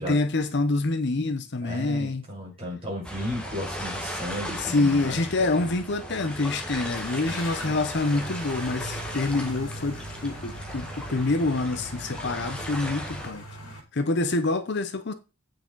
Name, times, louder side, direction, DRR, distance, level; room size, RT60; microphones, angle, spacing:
voice 1, 0.0-2.2 4.6-10.0 10.2-13.4 13.9-15.1, left 2 dB, 50° left, 0.8 m, -26 dB
voice 2, 1.6-5.2 5.6-5.7 7.2-7.7 13.6-13.7, left 1 dB, 25° right, 5.2 m, -35 dB
sound 1, 3.0-13.3, equal, 5° left, 1.5 m, -36 dB
sound 2, 6.9-13.8, right 1 dB, 75° left, 3.3 m, -41 dB
8.6 x 6.5 x 3.9 m
head